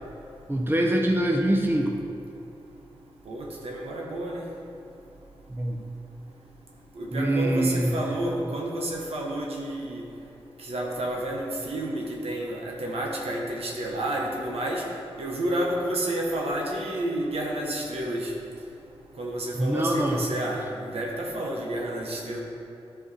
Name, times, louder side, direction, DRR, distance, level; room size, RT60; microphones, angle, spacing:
voice 1, 0.5-2.0 5.5-5.8 7.1-8.0 19.5-20.2, right 1 dB, 20° right, 1 dB, 1.0 m, -24 dB
voice 2, 3.3-4.4 7.0-10.0 10.6-14.8 15.2-18.3 19.2-22.4, right 1 dB, 85° right, -2 dB, 1.2 m, -30 dB
11.0 x 4.8 x 4.2 m, 2.6 s
cardioid pair, 50°, 10 cm